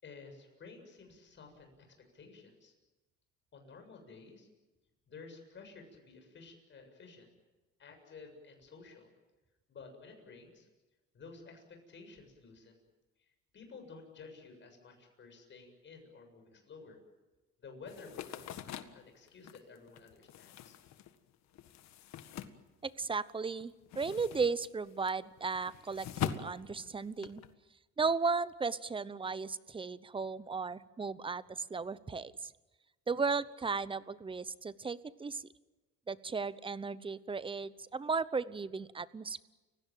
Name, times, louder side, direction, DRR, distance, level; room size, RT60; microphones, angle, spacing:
voice 1, 0.0-2.7 3.5-4.5 5.1-7.3 7.8-9.1 9.7-10.7 11.1-12.8 13.5-17.0 17.6-18.6 18.9-20.8, left 4 dB, 40° left, 4 dB, 7.5 m, -53 dB
sound 1, 17.9-23.3 23.6-27.5, left 10 dB, 60° left, 1.7 m, -43 dB
voice 2, 22.8-27.4 28.0-32.5 33.1-35.5 36.1-39.4, right 4 dB, 15° right, 17 dB, 0.8 m, -35 dB
30.0 x 17.0 x 9.2 m, 1.1 s
cardioid pair, 120°, 30 cm